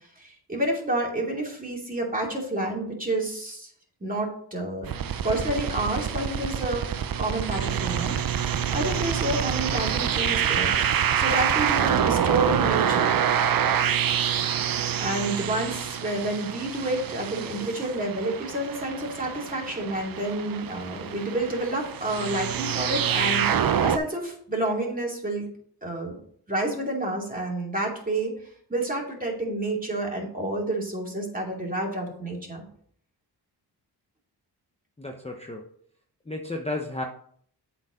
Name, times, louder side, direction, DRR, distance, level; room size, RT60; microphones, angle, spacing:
voice 1, 0.2-3.7 4.0-4.9 5.2-6.9 7.2-10.8 11.1-13.2 15.0-25.5 25.8-26.2 26.5-28.3 28.7-32.6, right 1 dB, 20° right, -1 dB, 2.7 m, -29 dB
sound 1, 4.8-24.0, right 8 dB, 55° right, 0.6 m, -26 dB
voice 2, 35.0-35.6 36.3-37.0, left 2 dB, 15° left, 2 dB, 0.9 m, -32 dB
7.9 x 4.6 x 5.0 m, 0.62 s
cardioid pair, 55°, 42 cm